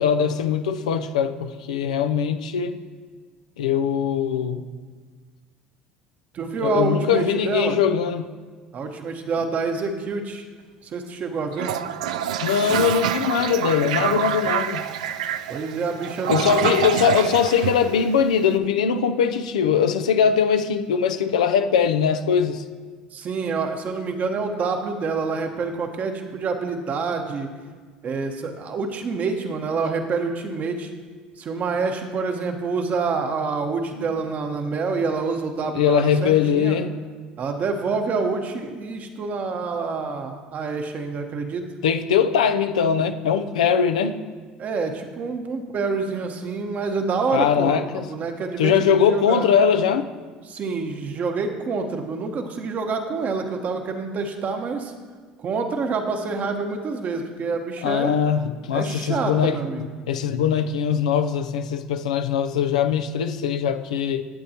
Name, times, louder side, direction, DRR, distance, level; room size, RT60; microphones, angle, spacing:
voice 1, 0.0-2.8 3.6-4.6 6.6-8.3 12.4-14.8 16.3-22.6 34.0-34.1 35.7-36.9 41.8-44.2 47.3-48.1 48.6-50.1 57.8-59.6 60.1-64.2, left 7 dB, 90° left, 0.4 m, -21 dB
voice 2, 6.3-7.8 8.7-10.4 10.8-11.7 15.5-16.7 23.1-27.5 28.0-30.9 31.4-36.8 37.4-41.7 44.6-49.5 50.5-54.9 55.4-58.2 58.7-59.8, right 4 dB, 45° right, 1.1 m, -27 dB
Toilet flush, 11.5-18.5, right 9 dB, 90° right, 0.3 m, -26 dB
11.5 x 7.7 x 2.9 m
hypercardioid pair, 75°, 4 cm